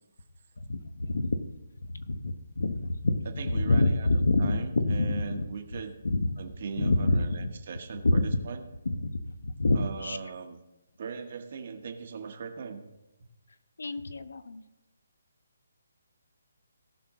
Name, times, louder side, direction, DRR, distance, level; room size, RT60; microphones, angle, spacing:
voice 1, 0.7-1.4 1.8-3.2 3.5-5.5 6.0-6.3 6.8-7.5 8.0-8.2 8.9-10.2 13.8-14.6, left 2 dB, 80° left, 10 dB, 1.0 m, -27 dB
voice 2, 3.4-5.9 6.4-8.7 9.7-10.6 11.0-12.8, right 5 dB, 35° right, 5 dB, 1.2 m, -39 dB
17.5 x 6.0 x 3.7 m, 0.98 s
hypercardioid pair, 175°, 0 cm